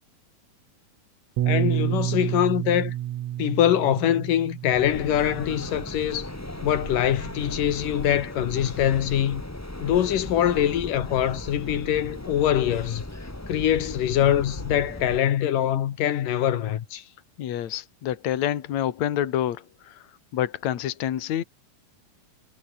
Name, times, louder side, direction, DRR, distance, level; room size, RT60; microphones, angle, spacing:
Bass guitar, 1.4-5.9 6.6-7.6, right 13 dB, 65° right, 2.2 m, -30 dB
voice 1, 1.5-2.9 3.4-6.3 6.6-9.4 9.8-13.0 13.5-17.0, left 11 dB, 85° left, 3.3 m, -23 dB
sound 1, 4.7-15.2, left 1 dB, 15° left, 0.5 m, -37 dB
voice 2, 17.4-20.0 20.3-21.4, left 11 dB, 60° left, 2.8 m, -27 dB
omnidirectional pair, 3.7 m